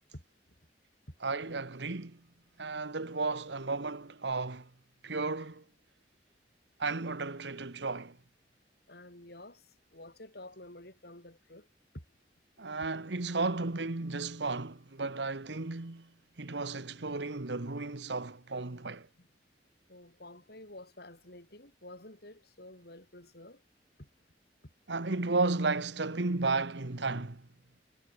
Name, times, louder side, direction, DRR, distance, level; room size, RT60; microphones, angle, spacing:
voice 1, 1.2-2.2 2.6-4.7 5.0-5.6 6.8-8.2 12.6-19.1 24.9-27.5, right 3 dB, 75° right, 1.4 m, -34 dB
voice 2, 8.9-11.7 11.9-12.0 19.2-19.3 19.9-23.6 24.0-24.1 24.6-24.7, left 1 dB, 60° left, 7.3 m, -50 dB
head